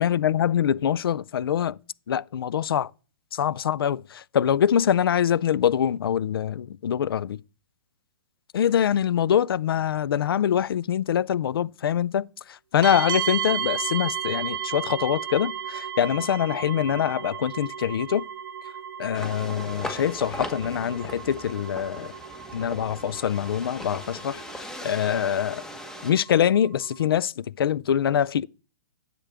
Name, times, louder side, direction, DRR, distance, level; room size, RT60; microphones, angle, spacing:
voice 1, 0.0-1.8 2.1-2.9 3.3-7.4 8.5-12.3 12.7-18.3 19.0-22.1 22.5-24.4 24.8-25.6 26.0-28.5, left 9 dB, 85° left, 0.4 m, -24 dB
sound 1, 12.8-27.1, right 9 dB, 65° right, 0.6 m, -35 dB
sound 2, 19.1-26.1, left 1 dB, 5° left, 1.1 m, -39 dB
10.0 x 7.7 x 3.4 m
hypercardioid pair, 155°, 12 cm